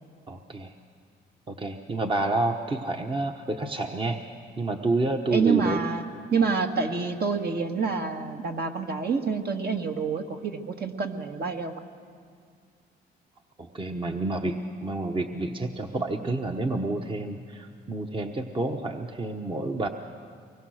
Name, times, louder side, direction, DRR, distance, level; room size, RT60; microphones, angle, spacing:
voice 1, 0.3-0.7 1.5-4.2 4.6-5.8 13.6-19.9, right 2 dB, 25° right, 4 dB, 1.1 m, -29 dB
voice 2, 5.3-6.1 6.3-11.8, right 5 dB, 55° right, 4 dB, 1.7 m, -27 dB
24.0 x 21.0 x 6.5 m, 2.1 s
cardioid pair, 90°, 20 cm